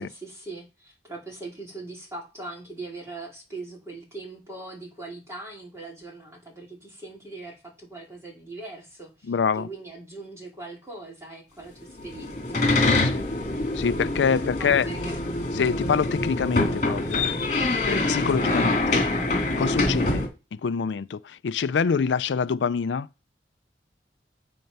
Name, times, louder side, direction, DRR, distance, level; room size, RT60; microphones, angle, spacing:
voice 1, 0.0-12.6 14.3-15.2 18.4-18.5, right 2 dB, 15° right, 3.8 m, -41 dB
voice 2, 9.3-9.7 12.9-13.2 13.7-14.9 15.5-17.3 17.9-19.1 19.6-20.2 20.6-23.1, left 6 dB, 90° left, 0.4 m, -25 dB
sound 1, 12.0-20.3, left 2 dB, 40° left, 2.6 m, -25 dB
9.2 x 4.4 x 5.4 m
head